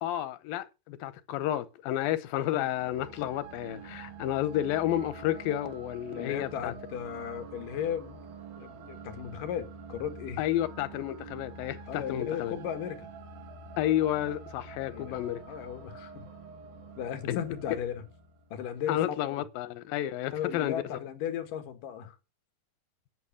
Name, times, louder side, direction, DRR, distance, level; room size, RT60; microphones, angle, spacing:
voice 1, 0.0-6.7 10.4-12.5 13.8-15.4 17.3-17.4 18.9-20.8, left 13 dB, 90° left, 2.6 m, -31 dB
sound 1, 2.6-18.9, right 4 dB, 90° right, 3.6 m, -47 dB
voice 2, 6.2-8.2 8.6-10.5 11.9-13.1 14.9-16.3 17.0-18.0 18.5-19.4 20.3-22.2, left 9 dB, 70° left, 3.0 m, -36 dB
11.0 x 6.2 x 7.3 m
omnidirectional pair, 4.1 m